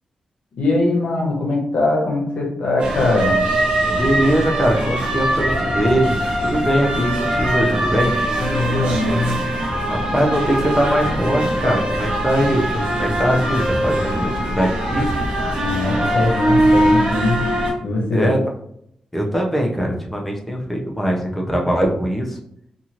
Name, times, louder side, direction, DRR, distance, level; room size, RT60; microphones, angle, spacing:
voice 1, 0.5-3.4 8.4-9.4 15.6-17.4 17.8-18.3, left 2 dB, 70° left, -1 dB, 0.9 m, -21 dB
sound 1, 2.8-17.7, right 1 dB, 60° right, 0.8 m, -21 dB
voice 2, 4.0-8.1 9.9-15.3 18.1-18.4 19.1-22.4, equal, 5° left, 0 dB, 0.5 m, -21 dB
2.7 x 2.5 x 2.9 m, 0.71 s
wide cardioid pair, 145°, 2 cm